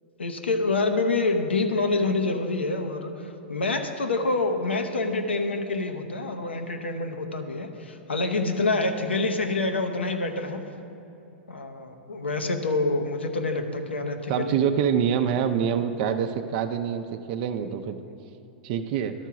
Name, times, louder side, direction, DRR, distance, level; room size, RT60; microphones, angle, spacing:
voice 1, 0.2-10.6 11.5-14.6, left 3 dB, 85° left, 6 dB, 0.8 m, -27 dB
voice 2, 14.3-18.0 18.6-19.1, right 8 dB, 50° right, 6 dB, 0.4 m, -25 dB
11.5 x 4.5 x 5.9 m, 2.8 s
hypercardioid pair, 105°, 6 cm